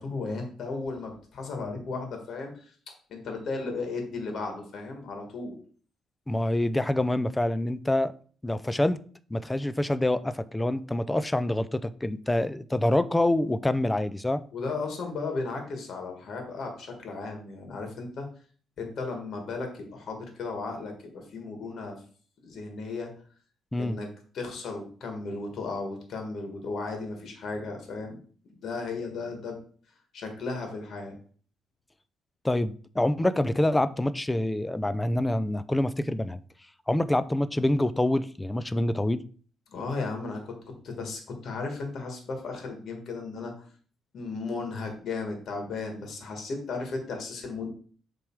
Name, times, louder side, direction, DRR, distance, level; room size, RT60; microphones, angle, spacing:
voice 1, 0.0-2.7 3.1-5.6 14.5-18.3 18.8-21.9 22.4-23.1 23.7-24.1 24.3-28.2 28.6-29.6 30.1-31.1 39.7-43.7 44.1-47.7, left 3 dB, 60° left, 3 dB, 1.9 m, -35 dB
voice 2, 6.3-8.1 8.4-9.0 9.3-14.4 23.7-24.0 32.4-36.4 36.9-39.2, left 1 dB, 10° left, 15 dB, 0.4 m, -26 dB
7.2 x 3.5 x 4.7 m, 0.44 s
cardioid pair, 90°, 0 cm